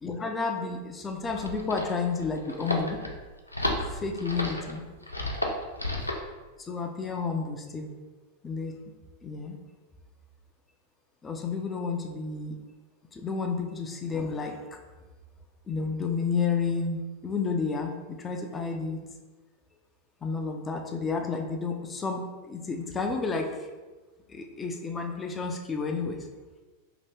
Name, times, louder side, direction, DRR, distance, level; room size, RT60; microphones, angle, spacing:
voice 1, 0.0-3.0 3.9-4.8 6.7-7.9 8.4-8.7 9.2-9.6 11.2-12.6 13.1-14.6 15.7-19.0 20.2-22.2 22.5-23.5 24.3-26.2, left 4 dB, 15° left, 3 dB, 0.4 m, -31 dB
sound 1, 1.1-6.3, left 1 dB, 85° left, 0.4 m, -32 dB
2.9 x 2.5 x 3.2 m, 1.3 s
figure-of-eight pair, 90°, 0 cm